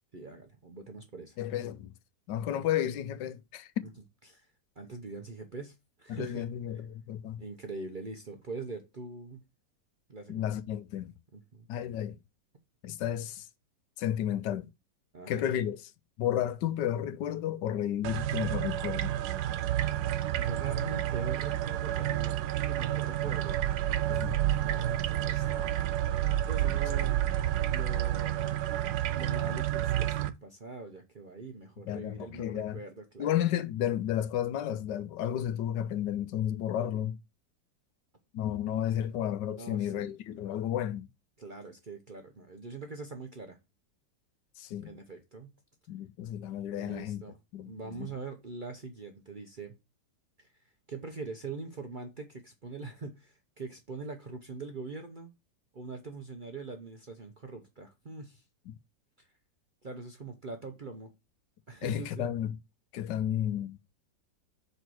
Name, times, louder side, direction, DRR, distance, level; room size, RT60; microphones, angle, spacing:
voice 1, 0.1-1.4 4.3-4.5 4.8-6.5 7.4-9.4 10.1-10.5 11.3-11.7 15.1-15.5 20.4-22.4 22.7-23.6 24.5-25.9 26.5-27.1 27.7-28.5 29.1-33.3 36.8-37.0 39.5-40.1 41.4-43.6 44.8-45.5 46.7-47.4 47.6-49.8 50.4-50.5 50.9-55.3 55.7-58.4 59.2-59.3 59.8-61.1 61.7-62.3, right 3 dB, 40° right, 0.7 m, -43 dB
voice 2, 1.4-1.9 2.3-3.8 6.1-7.4 10.3-11.1 11.7-12.2 12.8-13.5 14.0-14.7 15.3-15.9 16.2-19.1 24.1-24.4 31.9-32.8 33.2-37.2 38.3-41.1 44.6-44.9 45.9-47.2 47.5-48.1 58.7-58.8 61.8-62.6 62.9-63.8, left 11 dB, 85° left, 1.3 m, -32 dB
sound 1, 18.0-30.3, right 12 dB, 75° right, 1.1 m, -30 dB
5.5 x 4.5 x 6.2 m
omnidirectional pair, 1.9 m